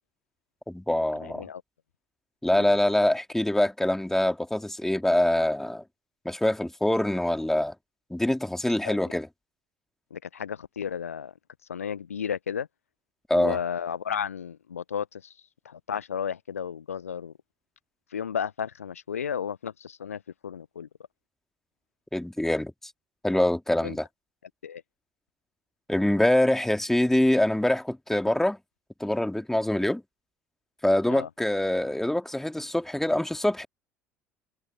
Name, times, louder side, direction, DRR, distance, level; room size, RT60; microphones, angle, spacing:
voice 1, 0.7-1.5 2.4-5.8 6.2-7.7 8.1-9.3 13.3-13.6 22.1-22.7 23.2-24.1 25.9-28.6 29.0-30.0 30.8-33.7, left 1 dB, 5° left, 2.6 m, -24 dB
voice 2, 1.2-1.6 2.5-2.8 8.8-9.0 10.1-11.3 11.7-12.7 13.3-15.3 15.6-17.3 18.1-20.9 23.8-24.0 24.6-24.8 31.1-31.3, left 7 dB, 75° left, 1.0 m, -33 dB
figure-of-eight pair, 60°, 8 cm